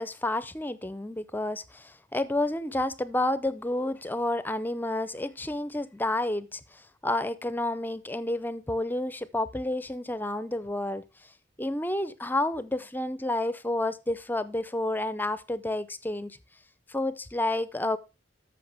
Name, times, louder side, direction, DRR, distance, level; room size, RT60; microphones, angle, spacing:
voice 1, 0.0-11.0 11.6-16.4 16.9-18.0, left 1 dB, 10° left, 0.6 m, -30 dB
13.0 x 6.3 x 3.4 m
head